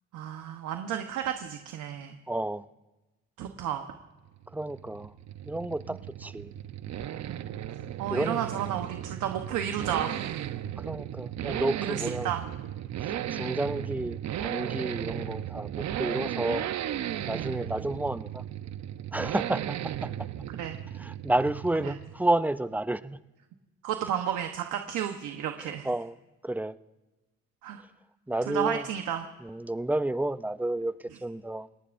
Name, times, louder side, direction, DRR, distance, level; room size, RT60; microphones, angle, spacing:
voice 1, 0.1-2.2 3.4-3.8 7.2-7.5 8.0-10.3 11.9-12.4 17.3-17.6 20.5-20.8 21.8-21.9 23.8-25.9 27.6-27.8 28.5-29.2, right 10 dB, 90° right, 5 dB, 1.1 m, -32 dB
voice 2, 2.3-2.7 4.5-5.1 5.4-6.5 8.1-8.4 10.8-12.3 13.0-16.7 17.3-18.4 19.1-20.3 21.0-23.2 25.6-26.2 26.4-26.8 28.3-28.9 29.4-31.7, right 1 dB, 5° right, 14 dB, 0.5 m, -31 dB
sound 1, 4.3-22.3, right 11 dB, 65° right, 0.7 m, -35 dB
29.5 x 18.0 x 2.6 m, 1.1 s
cardioid pair, 90°, 30 cm